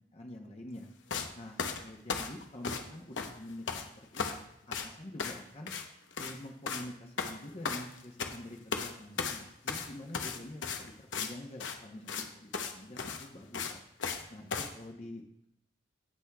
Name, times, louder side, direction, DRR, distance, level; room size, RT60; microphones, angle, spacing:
voice 1, 0.1-0.9 1.3-5.7 6.2-13.8 14.3-15.5, left 1 dB, 35° left, 1 dB, 0.9 m, -47 dB
sound 1, 1.1-1.3 1.6-2.9 3.1-3.8 4.1-4.4 4.7-4.9 5.2-5.4 5.7-5.9 6.1-6.4 6.7-6.9 7.2-8.4 8.7-8.9 9.2-11.3 11.6-11.8 12.1-12.2 12.5-12.7 13.0-14.2 14.5-14.7, left 5 dB, 90° left, 0.9 m, -36 dB
17.0 x 6.1 x 2.3 m, 0.75 s
head